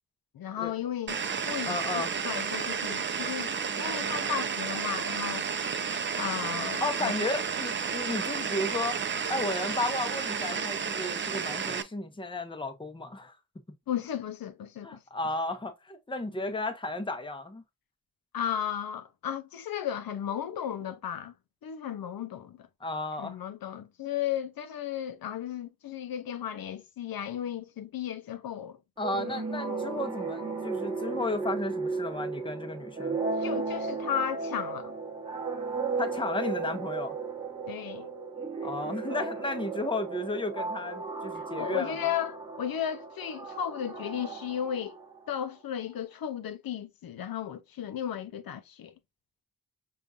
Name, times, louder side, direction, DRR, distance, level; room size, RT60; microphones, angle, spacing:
voice 1, 0.3-1.2 1.4-5.5 6.1-7.1 13.9-15.0 18.3-21.3 21.6-22.7 23.2-28.8 29.1-29.2 33.4-34.9 37.7-38.1 41.4-45.0 45.3-48.9, left 9 dB, 80° left, 0.5 m, -35 dB
sound 1, 1.1-11.8, right 6 dB, 35° right, 0.4 m, -32 dB
voice 2, 1.6-2.1 6.8-9.0 9.3-13.3 14.8-17.6 22.8-23.4 29.0-33.2 36.0-37.2 38.6-41.9, left 2 dB, 15° left, 0.6 m, -33 dB
sound 2, 29.0-45.4, right 4 dB, 15° right, 0.9 m, -35 dB
5.1 x 2.4 x 2.3 m
cardioid pair, 60°, 35 cm